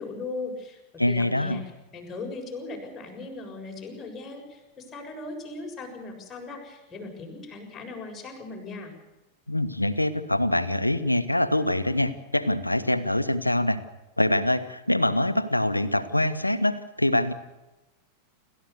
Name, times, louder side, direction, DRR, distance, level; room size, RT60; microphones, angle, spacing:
voice 1, 0.0-1.6 1.9-8.9, left 3 dB, 20° left, 1 dB, 7.1 m, -38 dB
voice 2, 1.0-1.6 9.5-13.8 14.2-17.3, left 1 dB, 85° left, 13 dB, 1.3 m, -24 dB
29.0 x 14.0 x 6.8 m, 1.0 s
figure-of-eight pair, 90°, 0 cm